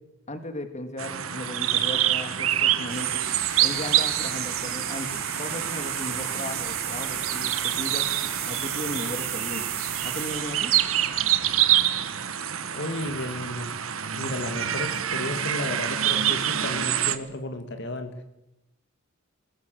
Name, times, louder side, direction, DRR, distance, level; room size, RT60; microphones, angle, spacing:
voice 1, 0.3-3.3 3.6-8.1 8.5-10.7, left 1 dB, 35° left, 8 dB, 2.3 m, -36 dB
sound 1, 1.0-17.2, right 11 dB, 85° right, 1.5 m, -27 dB
sound 2, 2.9-12.1, right 9 dB, 50° right, 4.1 m, -34 dB
voice 2, 12.7-13.8 14.2-18.1, left 1 dB, 60° left, 7 dB, 2.3 m, -33 dB
21.0 x 20.5 x 7.9 m, 0.91 s
head